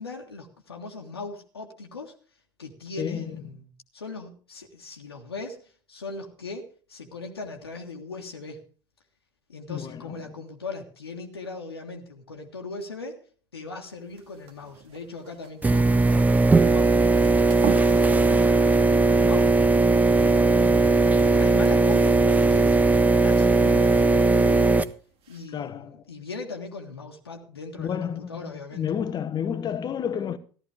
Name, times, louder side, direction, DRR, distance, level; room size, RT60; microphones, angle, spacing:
voice 1, 0.0-2.1 2.6-3.6 3.9-8.6 9.5-13.2 13.5-18.4 19.0-19.6 20.2-22.7 23.2-24.8 25.3-28.9, left 3 dB, 80° left, 1.6 m, -39 dB
voice 2, 3.0-3.3 9.7-10.3 25.5-26.0 27.8-30.4, left 8 dB, 35° left, 1.1 m, -31 dB
sound 1, 13.9-25.5, right 10 dB, 50° right, 2.0 m, -43 dB
sound 2, 15.6-24.8, right 3 dB, 10° right, 0.7 m, -19 dB
15.0 x 12.5 x 3.5 m
figure-of-eight pair, 70°, 13 cm